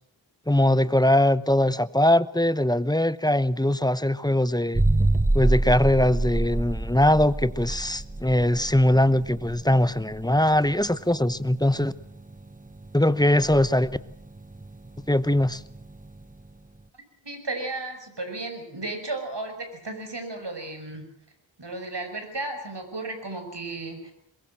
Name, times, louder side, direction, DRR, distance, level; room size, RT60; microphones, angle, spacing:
voice 1, 0.5-4.8 5.3-11.9 12.9-13.9 15.1-15.6, left 1 dB, 10° left, 15 dB, 0.9 m, -21 dB
sound 1, 4.7-16.4, right 2 dB, 15° right, 1.1 m, -28 dB
voice 2, 17.2-21.1 21.6-24.1, right 2 dB, 60° right, 6 dB, 5.8 m, -34 dB
22.0 x 21.5 x 7.6 m, 0.69 s
wide cardioid pair, 55°, 47 cm